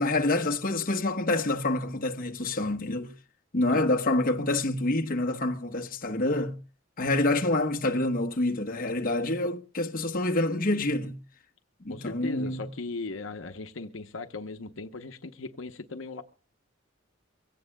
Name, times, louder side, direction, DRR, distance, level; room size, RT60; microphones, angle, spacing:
voice 1, 0.0-3.1 3.5-6.6 7.0-11.2 11.8-12.7, left 2 dB, 45° left, 1.1 m, -27 dB
voice 2, 11.9-16.2, left 3 dB, 75° left, 0.9 m, -38 dB
24.0 x 17.0 x 2.2 m
head